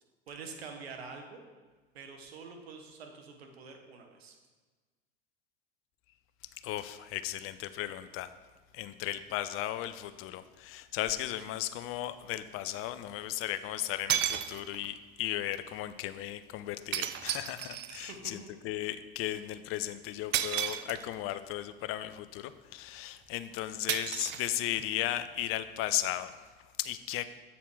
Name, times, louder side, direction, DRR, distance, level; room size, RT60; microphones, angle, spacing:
voice 1, 0.3-1.4 1.9-4.4 18.1-18.5, right 4 dB, 85° right, 4 dB, 1.0 m, -46 dB
voice 2, 6.6-8.3 8.7-26.4 26.8-27.3, left 13 dB, 45° left, 12 dB, 0.5 m, -36 dB
sound 1, 11.4-11.5 13.5-13.6 14.1-15.0 16.9-18.2 20.3-21.3 23.9-25.0, right 11 dB, 35° right, 0.4 m, -33 dB
7.1 x 4.2 x 4.6 m, 1.4 s
hypercardioid pair, 80°, 31 cm